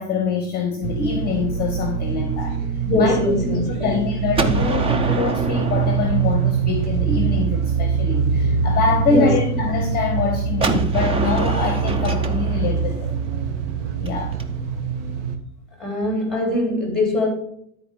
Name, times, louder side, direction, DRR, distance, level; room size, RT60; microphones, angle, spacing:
voice 1, 0.0-2.6 3.0-13.1 14.0-14.3, left 4 dB, 25° left, 1.3 m, -24 dB
sound 1, 0.8-15.4, right 6 dB, 55° right, 1.4 m, -23 dB
voice 2, 2.8-3.9 9.0-9.3 15.8-17.3, left 1 dB, ahead, 3.1 m, -21 dB
Gunshot gunfire, 4.3-7.2 10.6-14.4, right 3 dB, 15° right, 0.5 m, -26 dB
12.0 x 4.5 x 4.9 m
supercardioid pair, 130°, 41 cm